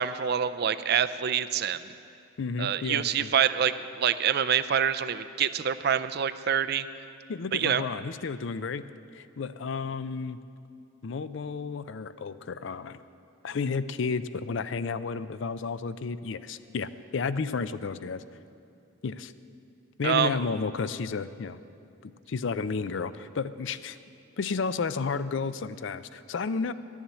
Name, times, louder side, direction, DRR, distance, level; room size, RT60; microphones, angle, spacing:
voice 1, 0.0-1.8 2.6-6.9 7.5-7.8 20.0-20.4, right 8 dB, 50° right, 13 dB, 0.4 m, -26 dB
voice 2, 2.4-3.3 7.3-8.8 9.1-10.4 11.0-13.0 13.4-18.2 19.0-19.3 20.0-21.6 22.0-24.0 24.4-26.7, left 4 dB, 60° left, 14 dB, 0.4 m, -32 dB
12.5 x 7.2 x 9.4 m, 2.5 s
head